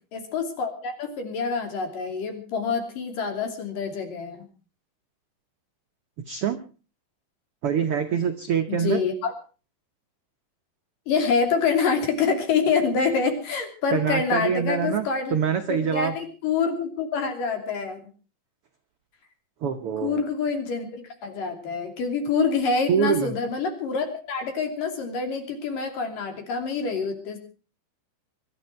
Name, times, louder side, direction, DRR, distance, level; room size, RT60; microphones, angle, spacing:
voice 1, 0.1-4.5 8.7-9.3 11.1-15.3 15.9-18.0 20.0-27.4, left 5 dB, 65° left, 5 dB, 4.5 m, -26 dB
voice 2, 6.2-6.6 7.6-9.0 13.9-16.2 19.6-20.2 22.9-23.3, right 7 dB, 80° right, 7 dB, 1.2 m, -25 dB
23.5 x 12.5 x 4.6 m, 0.37 s
omnidirectional pair, 4.2 m